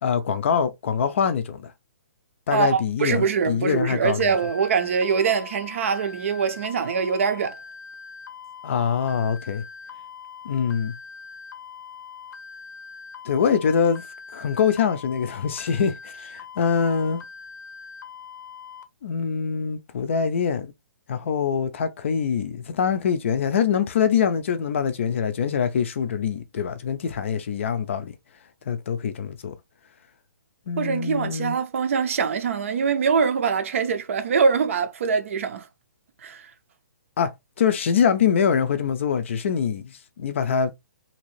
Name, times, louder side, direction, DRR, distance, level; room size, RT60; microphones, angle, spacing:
voice 1, 0.0-1.7 2.5-4.4 8.6-9.6 10.4-10.9 13.3-14.0 14.3-17.2 19.0-20.7 21.1-28.2 28.7-29.6 30.7-31.6 37.2-37.3 37.6-40.7, left 7 dB, 40° left, 0.4 m, -24 dB
voice 2, 2.5-7.6 30.8-35.7 36.2-36.5, right 6 dB, 45° right, 0.5 m, -23 dB
sound 1, 4.2-18.8, left 6 dB, 80° left, 0.6 m, -42 dB
2.8 x 2.6 x 3.1 m
hypercardioid pair, 170°, 10 cm